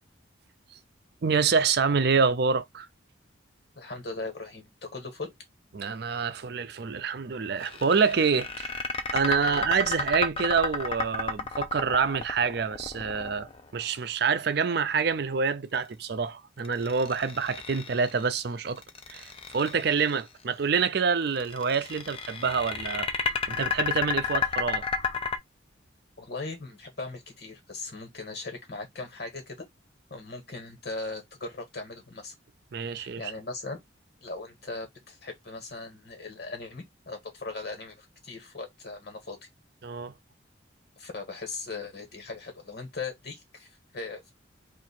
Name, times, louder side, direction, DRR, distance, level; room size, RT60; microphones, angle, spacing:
voice 1, 1.2-2.9 5.7-8.8 9.1-18.8 19.1-23.1 23.5-24.8 32.7-33.3 39.8-40.1, right 5 dB, 55° right, 0.5 m, -27 dB
voice 2, 3.7-5.3 9.5-9.6 26.2-29.5 30.1-32.3 33.0-33.8 34.2-39.4 41.0-44.3, left 3 dB, 55° left, 1.4 m, -39 dB
sound 1, 7.6-13.8 16.6-18.2 18.8-20.1 21.4-25.4, left 4 dB, 30° left, 0.5 m, -32 dB
2.9 x 2.5 x 4.3 m
head